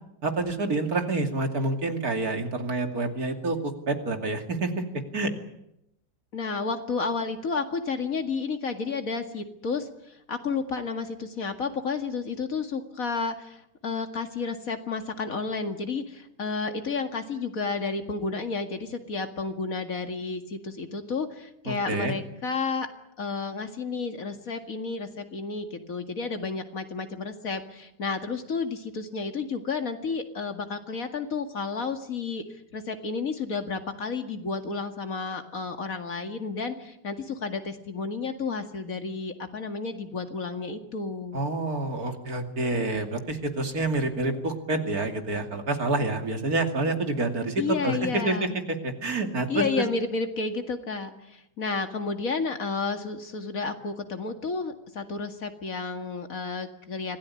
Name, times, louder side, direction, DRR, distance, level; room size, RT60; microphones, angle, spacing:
voice 1, 0.2-5.3 21.7-22.1 41.3-49.8, right 2 dB, 55° right, 5 dB, 3.0 m, -28 dB
voice 2, 6.3-9.9 10.3-22.9 23.2-32.4 32.7-41.4 47.6-48.6 49.5-57.2, left 4 dB, 50° left, 6 dB, 2.5 m, -31 dB
26.0 x 17.5 x 9.8 m, 0.84 s
omnidirectional pair, 1.9 m